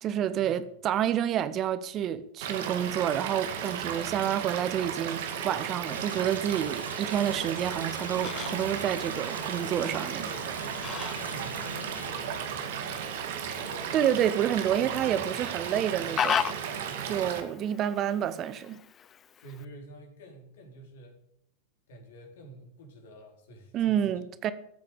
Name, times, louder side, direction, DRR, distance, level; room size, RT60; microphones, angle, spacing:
voice 1, 0.0-10.3 13.9-16.5 17.0-18.8 23.7-24.5, right 10 dB, 30° right, 0.9 m, -29 dB
Stream / Liquid, 2.4-17.4, right 8 dB, 55° right, 2.0 m, -35 dB
sound 1, 5.9-12.1, left 2 dB, 85° left, 1.3 m, -44 dB
Fowl, 7.7-19.7, left 8 dB, 25° left, 0.5 m, -38 dB
voice 2, 10.2-10.9 11.2-13.2 14.8-15.0 17.0-17.3 19.4-21.2 21.9-24.0, right 1 dB, 55° left, 4.3 m, -48 dB
14.5 x 8.7 x 8.4 m
figure-of-eight pair, 90°, 0 cm